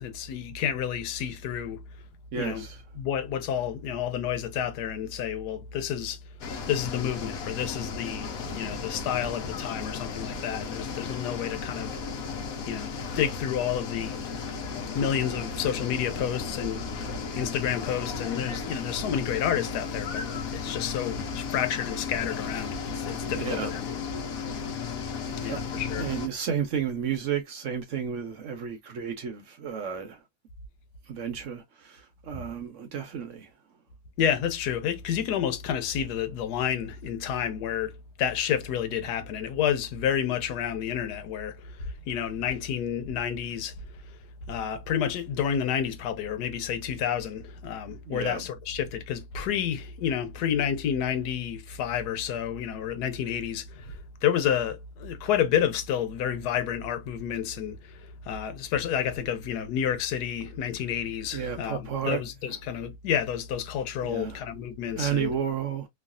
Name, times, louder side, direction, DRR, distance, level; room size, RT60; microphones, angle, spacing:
voice 1, 0.0-1.8 2.3-2.6 3.0-6.2 6.7-12.0 12.7-14.2 14.9-20.3 20.5-23.8 25.4-26.1 32.3-32.4 34.2-44.2 44.5-65.3, left 9 dB, 90° left, 1.2 m, -30 dB
voice 2, 2.3-2.8 23.3-23.8 25.4-25.7 26.0-30.2 31.1-33.5 48.1-48.4 61.3-62.2 64.0-64.4 65.0-65.9, right 7 dB, 65° right, 0.9 m, -32 dB
sound 1, 6.4-26.3, left 5 dB, 65° left, 1.1 m, -35 dB
3.1 x 2.3 x 2.4 m
omnidirectional pair, 1.7 m